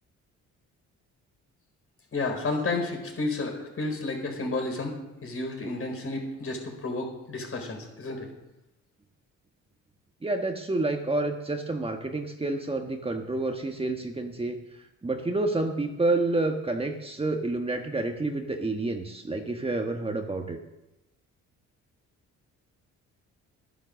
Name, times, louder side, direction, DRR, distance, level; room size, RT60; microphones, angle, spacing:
voice 1, 2.1-8.3, left 3 dB, 45° left, 2 dB, 4.4 m, -31 dB
voice 2, 10.2-14.6 15.0-20.6, right 2 dB, 20° right, 4 dB, 1.4 m, -29 dB
12.0 x 11.0 x 6.5 m, 0.95 s
cardioid pair, 90°, 30 cm